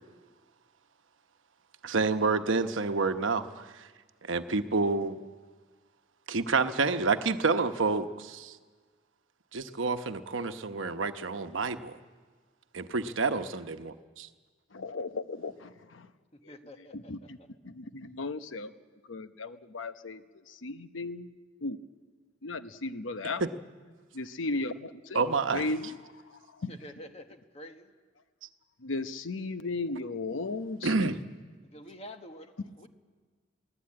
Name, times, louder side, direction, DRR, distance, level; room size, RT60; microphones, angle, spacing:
voice 1, 1.8-3.7 4.2-5.2 6.3-8.6 9.5-12.0 12.7-14.3 23.4-23.5 25.1-25.6 30.8-31.2, right 4 dB, 90° right, 9 dB, 1.0 m, -28 dB
voice 2, 14.7-16.1 16.4-16.5 16.9-17.4 17.6-18.7 19.1-21.3 21.6-21.8 22.4-23.4 24.1-26.7 28.8-31.1, left 3 dB, 90° left, 11 dB, 0.9 m, -36 dB
voice 3, 16.5-17.1 26.7-27.9 31.7-32.9, left 1 dB, 35° left, 7 dB, 1.3 m, -47 dB
22.5 x 17.0 x 8.7 m, 1.5 s
head